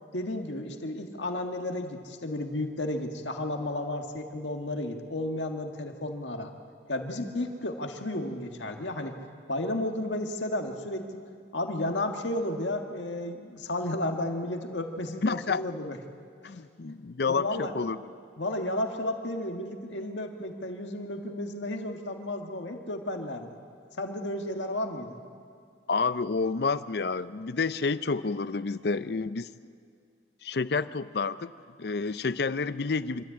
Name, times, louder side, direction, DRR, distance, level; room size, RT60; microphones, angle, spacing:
voice 1, 0.1-6.5 6.9-9.1 9.5-11.2 11.5-16.0 16.4-16.5 17.3-17.8 18.4-23.6 24.0-25.2, left 1 dB, 85° left, 4 dB, 1.7 m, -33 dB
voice 2, 15.2-15.6 16.4-18.0 25.9-29.5 30.4-31.5 31.8-33.2, left 4 dB, 60° left, 15 dB, 0.5 m, -29 dB
26.0 x 13.0 x 8.6 m, 2.3 s
head